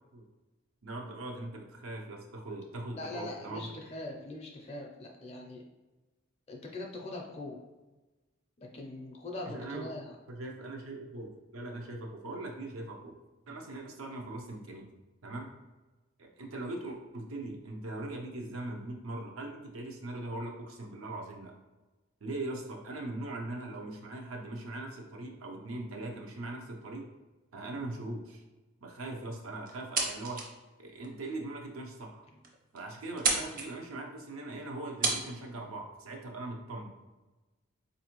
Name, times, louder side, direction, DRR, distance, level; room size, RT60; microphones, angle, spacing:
voice 1, 0.8-3.7 9.5-9.9 10.3-13.1 13.5-14.8 15.2-15.5 16.2-21.5 22.2-27.1 27.5-28.4 28.8-30.4 30.8-32.3 32.7-36.9, right 2 dB, 85° right, 1 dB, 0.6 m, -40 dB
voice 2, 3.0-5.6 6.5-7.6 8.6-10.2 13.5-13.6, left 2 dB, 30° left, 0 dB, 0.4 m, -42 dB
sound 1, 29.7-30.6 31.0-31.1 31.8-31.9 32.2-32.3 32.4-32.8 33.1-33.7 34.6-34.7 35.0-35.2, right 3 dB, 40° right, 0.6 m, -30 dB
4.2 x 2.6 x 2.9 m, 1.1 s
head